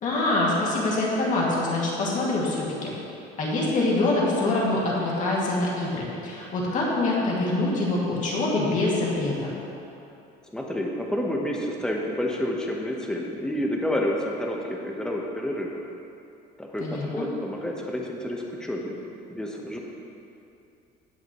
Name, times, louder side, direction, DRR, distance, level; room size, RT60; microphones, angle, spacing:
voice 1, 0.0-2.9 3.4-9.5 16.8-17.3, left 2 dB, 45° left, -4 dB, 2.2 m, -25 dB
voice 2, 10.5-15.7 16.6-18.9 19.3-19.8, left 1 dB, 5° left, -1 dB, 1.0 m, -29 dB
17.0 x 5.8 x 3.1 m, 2.7 s
cardioid pair, 145°, 18 cm